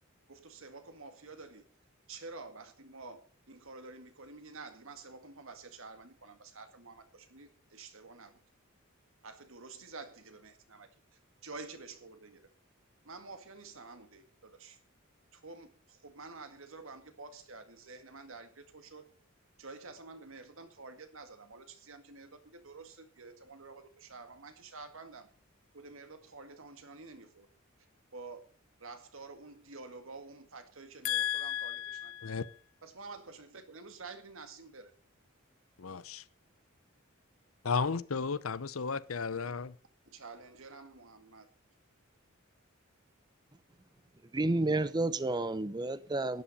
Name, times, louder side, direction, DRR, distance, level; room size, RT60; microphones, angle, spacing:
voice 1, 0.3-1.7 2.1-3.2 3.5-8.4 9.2-12.5 13.0-14.8 15.3-19.1 19.6-25.3 25.7-27.5 28.1-28.4 28.8-32.3 32.8-34.9 39.4-39.7 40.1-41.5, right 3 dB, 70° right, 2.0 m, -49 dB
voice 2, 31.0-32.5 35.8-36.2 37.6-39.7, left 6 dB, 80° left, 0.8 m, -34 dB
voice 3, 44.3-46.4, right 2 dB, 20° right, 0.6 m, -30 dB
12.5 x 10.0 x 5.3 m
head